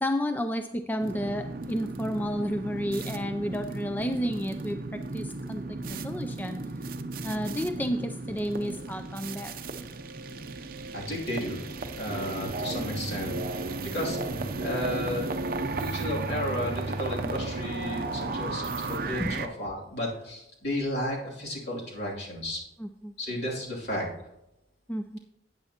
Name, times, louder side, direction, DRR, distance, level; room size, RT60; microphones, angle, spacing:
voice 1, 0.0-6.6 7.2-9.5 19.2-19.4 22.8-23.1 24.9-25.2, equal, 10° left, 7 dB, 0.3 m, -31 dB
sound 1, 1.0-19.5, right 3 dB, 50° right, 0.6 m, -34 dB
voice 2, 10.9-11.6 11.9-13.7 13.9-14.2 14.6-15.3 15.7-22.6 23.2-24.1, left 1 dB, 60° left, -3 dB, 2.7 m, -33 dB
13.5 x 9.0 x 2.9 m, 0.89 s
head